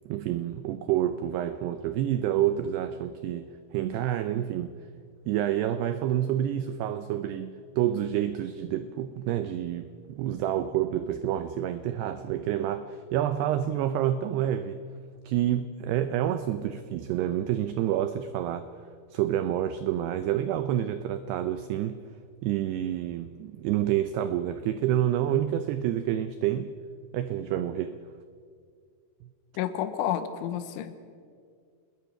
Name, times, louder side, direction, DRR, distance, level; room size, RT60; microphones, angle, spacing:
voice 1, 0.1-4.7 5.3-14.8 15.3-18.7 19.1-22.0 22.4-26.7 27.1-28.0, right 11 dB, 85° right, 11 dB, 2.3 m, -28 dB
voice 2, 29.6-30.9, left 10 dB, 85° left, 10 dB, 3.6 m, -30 dB
28.0 x 20.5 x 5.9 m, 2.2 s
omnidirectional pair, 5.6 m